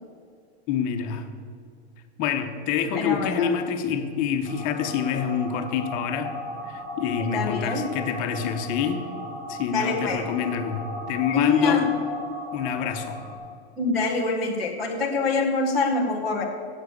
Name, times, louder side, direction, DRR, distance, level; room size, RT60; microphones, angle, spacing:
voice 1, 0.7-1.3 2.2-6.3 6.7-9.0 9.5-11.8 12.5-13.2, left 7 dB, 25° left, 6 dB, 0.9 m, -27 dB
voice 2, 2.9-3.5 7.3-7.9 9.7-10.2 11.3-11.8 13.8-16.4, left 4 dB, ahead, -10 dB, 0.3 m, -24 dB
sound 1, 4.4-13.3, left 1 dB, 35° right, 3.7 m, -36 dB
13.5 x 8.2 x 8.2 m, 2.3 s
supercardioid pair, 165°, 33 cm